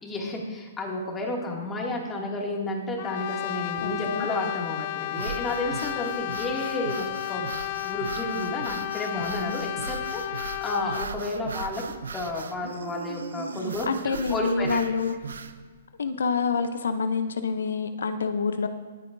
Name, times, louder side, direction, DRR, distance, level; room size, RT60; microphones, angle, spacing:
voice 1, 0.0-11.8 12.1-14.8, left 2 dB, 15° left, -2 dB, 2.4 m, -32 dB
Brass instrument, 3.0-11.2, left 17 dB, 45° left, 0.3 m, -33 dB
voice 2, 3.8-4.3 13.6-15.2 16.0-18.7, left 5 dB, 80° left, 8 dB, 0.7 m, -27 dB
sound 1, 5.1-15.6, right 5 dB, 80° right, 0.8 m, -38 dB
21.5 x 8.4 x 2.7 m, 1.5 s
hypercardioid pair, 135°, 0 cm